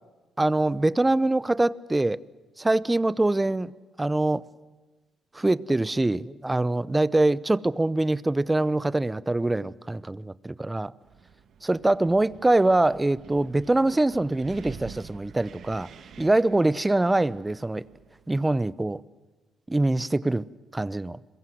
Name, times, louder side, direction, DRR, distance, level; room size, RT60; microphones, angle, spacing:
voice 1, 0.4-2.2 2.6-3.7 4.0-4.4 5.3-10.9 11.7-15.9 16.2-17.8 18.3-19.0 19.7-20.5 20.7-21.2, right 2 dB, 15° right, 0.8 m, -24 dB
Wind, 11.0-18.3, right 7 dB, 65° right, 1.8 m, -48 dB
26.5 x 22.0 x 7.9 m
cardioid pair, 90°, 0 cm